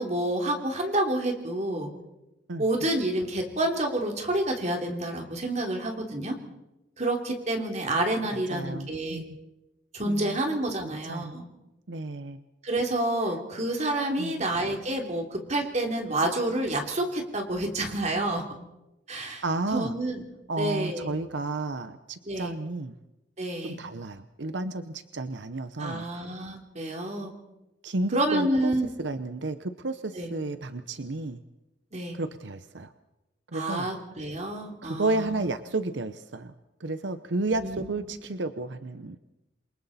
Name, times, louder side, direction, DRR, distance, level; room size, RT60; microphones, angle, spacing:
voice 1, 0.0-1.9 2.6-6.4 7.0-9.2 9.9-11.4 12.6-18.4 19.1-19.4 19.7-20.2 20.6-21.2 22.2-22.6 23.4-23.8 25.8-27.3 28.1-28.9 30.1-30.3 31.9-32.2 33.5-35.5 37.5-38.1, right 1 dB, 40° right, 2 dB, 3.3 m, -29 dB
voice 2, 8.3-9.2 10.0-10.4 11.1-11.3 11.9-12.4 14.2-14.3 19.2-19.9 20.5-22.9 23.6-26.1 27.8-28.7 29.0-31.4 32.1-32.9 33.5-33.9 34.8-36.5 36.8-39.2, right 2 dB, 90° right, 10 dB, 0.9 m, -32 dB
28.0 x 23.0 x 4.3 m, 0.97 s
head